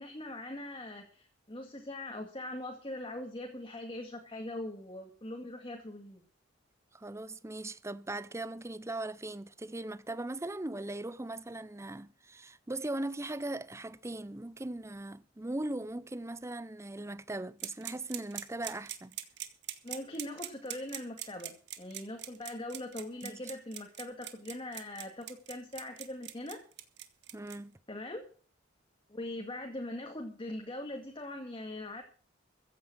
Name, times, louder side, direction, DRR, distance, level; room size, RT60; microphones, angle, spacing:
voice 1, 0.0-6.2 19.8-26.6 27.9-28.2 29.1-32.0, left 1 dB, 25° left, 2.2 m, -41 dB
voice 2, 6.9-19.2 23.2-23.4 27.3-27.8, right 2 dB, 15° right, 0.7 m, -39 dB
sound 1, 17.6-27.6, right 13 dB, 65° right, 1.7 m, -41 dB
15.5 x 9.2 x 6.2 m
head